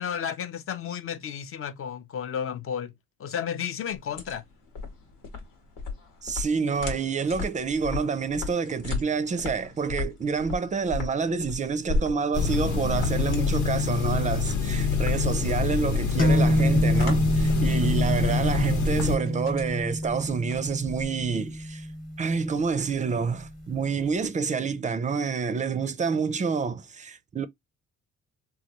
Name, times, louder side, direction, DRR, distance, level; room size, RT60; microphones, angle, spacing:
voice 1, 0.0-2.9 3.2-4.4, left 8 dB, 45° left, 0.5 m, -32 dB
sound 1, 3.9-21.4, left 3 dB, 90° left, 1.1 m, -36 dB
voice 2, 6.2-21.9 22.2-27.5, right 5 dB, 25° right, 0.4 m, -28 dB
sound 2, 12.3-19.2, left 5 dB, 70° left, 0.9 m, -26 dB
sound 3, 16.2-23.7, equal, 30° left, 1.0 m, -27 dB
3.1 x 2.3 x 2.8 m
cardioid pair, 90°, 30 cm